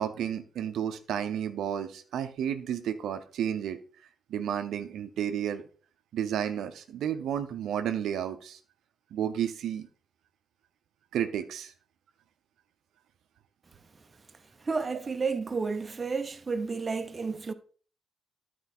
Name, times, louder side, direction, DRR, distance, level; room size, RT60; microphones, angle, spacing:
voice 1, 0.0-3.8 4.3-5.6 6.1-8.6 9.1-9.9 11.1-11.7, right 9 dB, 85° right, 0.6 m, -32 dB
voice 2, 14.6-17.5, right 4 dB, 35° right, 0.8 m, -31 dB
10.5 x 4.5 x 4.2 m
cardioid pair, 75°, 0 cm